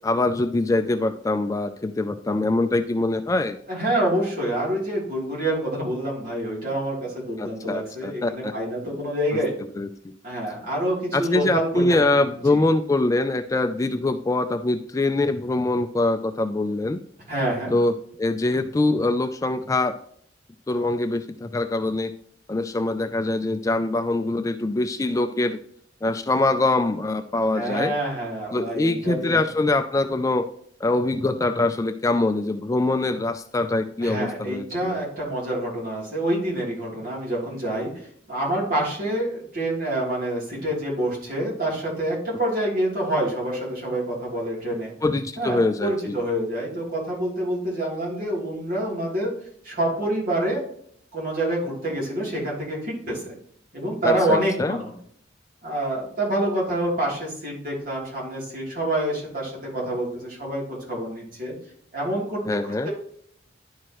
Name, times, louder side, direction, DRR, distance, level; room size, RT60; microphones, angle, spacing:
voice 1, 0.0-3.6 7.4-8.5 9.8-10.1 11.1-17.0 17.7-20.0 20.7-22.1 22.5-25.6 26.0-27.9 28.5-30.5 30.8-35.0 45.0-46.2 54.0-54.8 62.5-62.9, left 2 dB, 15° left, 8 dB, 0.3 m, -23 dB
voice 2, 3.7-9.5 10.2-12.0 12.5-12.6 17.3-17.7 27.5-29.4 34.0-44.9 45.4-49.3 49.6-50.6 51.1-53.3 53.7-54.9 55.6-61.5 61.9-62.9, right 1 dB, 50° right, -4 dB, 3.1 m, -27 dB
11.0 x 4.7 x 3.0 m, 0.64 s
head